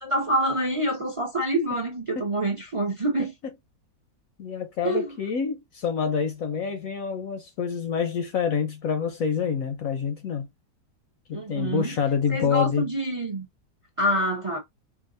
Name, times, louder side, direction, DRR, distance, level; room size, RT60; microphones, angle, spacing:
voice 1, 0.0-3.3 4.8-5.1 11.3-11.9 12.3-13.5 14.0-14.6, right 1 dB, 25° right, 0.8 m, -26 dB
voice 2, 4.4-10.5 11.3-12.9, left 6 dB, 65° left, 1.0 m, -27 dB
4.8 x 2.5 x 2.5 m
omnidirectional pair, 1.8 m